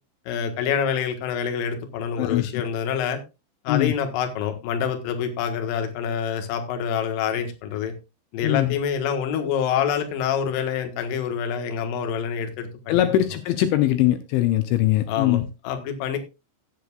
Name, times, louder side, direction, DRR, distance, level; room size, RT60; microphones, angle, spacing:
voice 1, 0.3-3.2 3.6-7.9 8.3-13.1 15.1-16.2, left 7 dB, 65° left, 5 dB, 2.5 m, -26 dB
voice 2, 8.4-8.7 12.9-15.5, left 14 dB, 80° left, 9 dB, 3.0 m, -21 dB
16.5 x 8.1 x 2.4 m, 0.27 s
omnidirectional pair, 5.6 m